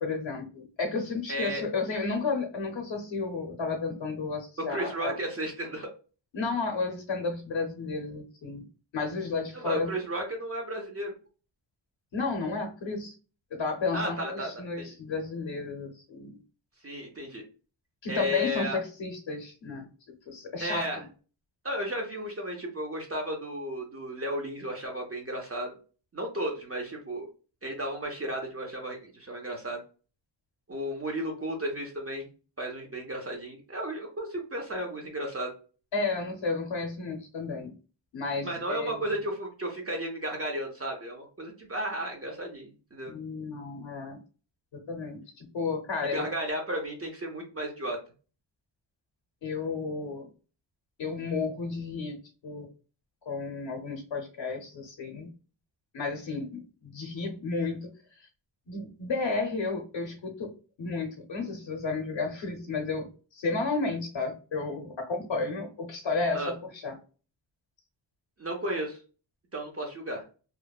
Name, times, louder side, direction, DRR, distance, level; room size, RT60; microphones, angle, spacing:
voice 1, 0.0-5.1 6.3-8.7 8.9-9.9 12.1-13.1 13.5-16.4 18.0-19.9 20.3-21.1 35.9-37.7 38.1-38.9 43.1-44.2 44.7-46.3 49.4-50.3 51.0-52.2 52.4-52.7 53.3-55.3 55.9-57.9 58.2-58.3 58.7-60.5 60.8-67.0, left 4 dB, 75° left, 3 dB, 0.6 m, -32 dB
voice 2, 1.3-1.6 4.6-5.9 9.5-11.1 13.9-14.5 14.8-14.9 16.8-17.4 18.1-18.8 20.6-21.0 21.6-25.7 26.1-27.3 27.6-29.8 30.7-32.3 32.6-35.5 38.4-43.1 46.1-48.0 66.3-66.5 68.4-69.0 69.5-70.2, right 1 dB, 30° right, 1 dB, 0.5 m, -34 dB
2.8 x 2.0 x 2.2 m, 0.35 s
wide cardioid pair, 160°, 47 cm